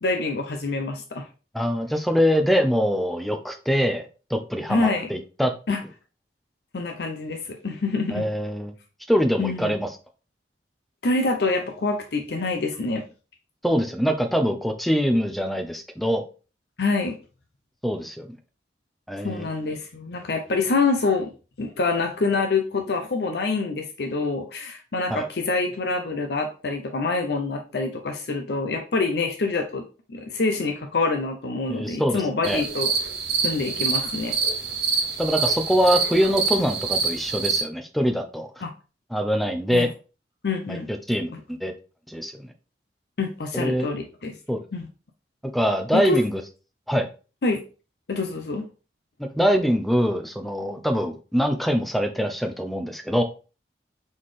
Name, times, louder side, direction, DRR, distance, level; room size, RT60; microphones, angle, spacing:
voice 1, 0.0-1.3 4.7-5.1 5.7-5.8 6.7-8.3 9.4-9.7 11.0-13.0 16.8-17.2 19.2-21.3 21.6-29.8 30.1-32.9 33.4-34.4 38.6-38.7 39.7-39.9 40.4-40.9 43.2-44.3 44.7-44.9 45.9-46.2 47.4-47.6 48.1-48.6, left 3 dB, 65° left, 4 dB, 0.5 m, -26 dB
voice 2, 1.5-5.5 8.1-8.7 9.1-9.9 13.6-16.2 17.8-18.4 19.1-19.5 25.1-25.2 31.7-32.6 35.2-38.5 39.1-39.9 40.7-41.7 42.1-42.5 43.5-43.9 44.5-44.6 45.5-46.4 46.9-47.1 49.2-53.2, equal, ahead, 6 dB, 0.5 m, -24 dB
sound 1, 32.4-37.6, right 5 dB, 60° right, 1.0 m, -26 dB
4.1 x 3.8 x 3.2 m, 0.34 s
head